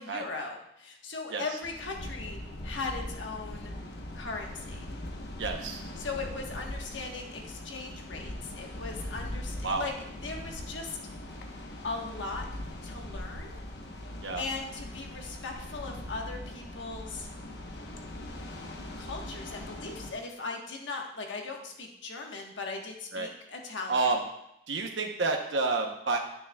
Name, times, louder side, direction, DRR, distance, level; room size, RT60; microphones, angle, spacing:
voice 1, 0.0-3.7 4.1-4.9 6.0-9.9 10.2-11.0 11.8-12.5 12.8-13.6 14.3-17.3 19.0-24.1, left 3 dB, 80° left, 1 dB, 1.3 m, -38 dB
sound 1, 1.6-20.1, left 1 dB, 65° left, 1.0 m, -41 dB
voice 2, 5.4-5.8 9.6-9.8 14.2-14.4 23.1-23.3 23.9-24.2 24.7-26.2, right 3 dB, 80° right, 2 dB, 0.9 m, -29 dB
9.8 x 9.5 x 2.3 m, 0.79 s
head